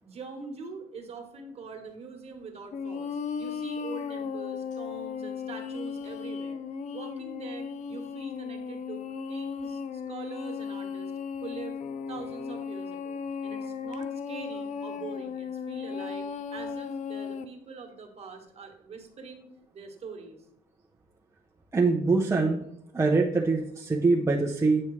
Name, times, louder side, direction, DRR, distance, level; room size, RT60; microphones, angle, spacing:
voice 1, 0.0-3.1 3.4-6.6 6.9-9.0 9.3-11.1 11.4-11.8 12.1-19.5 19.7-20.4, right 4 dB, 40° right, 3 dB, 1.5 m, -43 dB
sound 1, 2.7-17.5, left 6 dB, 45° left, 0.5 m, -36 dB
voice 2, 21.7-22.6 22.9-24.8, right 3 dB, 15° right, -1 dB, 0.7 m, -24 dB
8.5 x 5.3 x 3.2 m, 0.74 s
cardioid pair, 110°, 17 cm